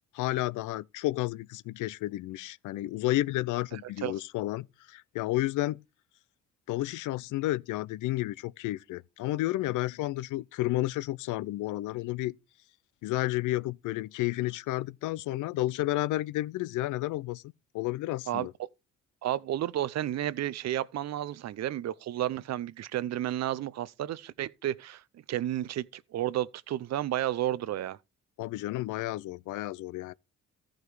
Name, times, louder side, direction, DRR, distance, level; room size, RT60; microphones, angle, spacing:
voice 1, 0.1-5.8 6.7-12.4 13.0-17.4 17.7-18.5 28.4-30.1, left 16 dB, 80° left, 0.5 m, -31 dB
voice 2, 3.7-4.1 18.3-18.5 19.2-25.0 25.3-28.0, right 12 dB, 60° right, 0.6 m, -32 dB
14.0 x 5.2 x 4.7 m
cardioid pair, 90°, 30 cm